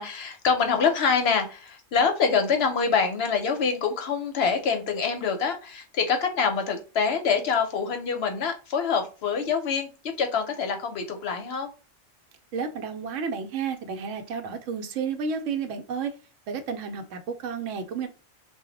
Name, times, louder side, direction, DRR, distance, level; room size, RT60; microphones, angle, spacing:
voice 1, 0.0-11.7, left 5 dB, 65° left, 0.8 m, -25 dB
voice 2, 12.5-16.1 16.5-18.1, right 6 dB, 85° right, 0.9 m, -31 dB
2.2 x 2.0 x 3.8 m
omnidirectional pair, 1.3 m